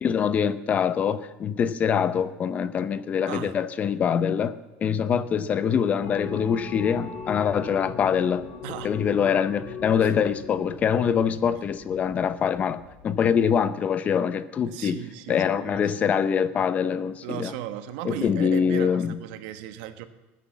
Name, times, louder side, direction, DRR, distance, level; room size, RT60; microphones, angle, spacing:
voice 1, 0.0-4.5 4.8-8.4 8.8-15.0 15.3-17.5 18.0-19.2, left 7 dB, 30° left, 14 dB, 0.7 m, -24 dB
sound 1, 6.0-13.5, left 4 dB, 65° left, 4.1 m, -39 dB
voice 2, 8.6-8.9 10.0-10.3 14.6-16.0 17.2-20.0, right 12 dB, 75° right, 9 dB, 1.4 m, -37 dB
20.0 x 10.0 x 7.4 m, 1.2 s
cardioid pair, 150°, 5 cm